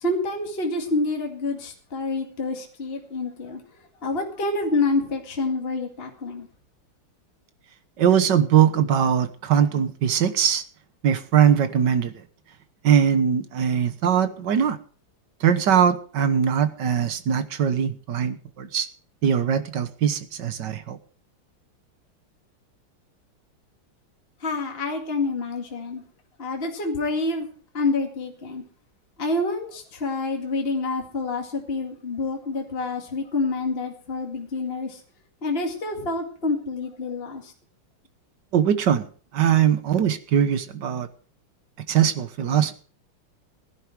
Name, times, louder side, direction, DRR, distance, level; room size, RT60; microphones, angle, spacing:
voice 1, 0.0-3.6 4.0-6.5 24.4-26.0 26.4-27.5 27.7-28.6 29.2-35.0 35.4-37.5, left 3 dB, 30° left, 2 dB, 2.3 m, -27 dB
voice 2, 8.0-10.6 11.0-12.1 12.8-14.8 15.4-18.9 19.2-21.0 38.5-39.0 39.3-41.1 41.9-42.7, right 8 dB, 60° right, 11 dB, 1.7 m, -21 dB
16.5 x 11.0 x 4.6 m, 0.42 s
omnidirectional pair, 2.3 m